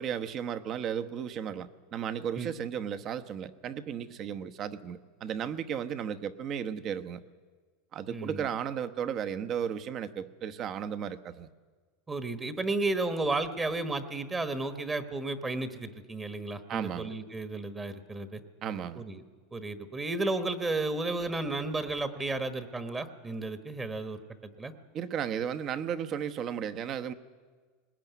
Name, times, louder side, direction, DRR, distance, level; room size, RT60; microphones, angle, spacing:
voice 1, 0.0-7.2 7.9-11.5 16.7-17.1 18.6-19.0 24.9-27.1, right 8 dB, 40° right, 11 dB, 1.0 m, -34 dB
voice 2, 8.1-8.5 12.1-18.4 19.0-19.2 19.5-24.7, right 2 dB, 15° right, 9 dB, 1.2 m, -33 dB
20.0 x 20.0 x 9.4 m, 1.5 s
supercardioid pair, 125°, 0 cm